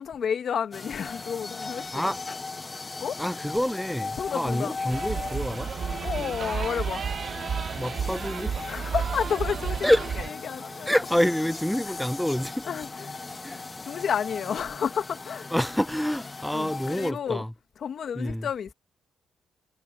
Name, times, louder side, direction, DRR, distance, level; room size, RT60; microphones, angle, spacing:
voice 1, 0.0-2.0 3.0-3.2 4.2-4.8 6.0-7.0 8.7-9.9 10.4-11.0 11.7-11.8 12.7-13.2 13.8-15.5 16.5-17.4 17.8-18.7, left 7 dB, 60° left, 1.7 m, -31 dB
sound 1, 0.7-17.1, left 3 dB, 25° left, 1.2 m, -38 dB
voice 2, 3.2-5.7 6.2-6.3 7.7-8.8 9.8-10.2 10.9-12.6 13.4-13.7 15.5-17.5 18.2-18.5, equal, 5° left, 0.4 m, -27 dB
sound 2, 4.9-10.3, right 7 dB, 50° right, 0.6 m, -32 dB
sound 3, 5.8-15.6, right 10 dB, 70° right, 2.6 m, -50 dB
cardioid pair, 90°, 0 cm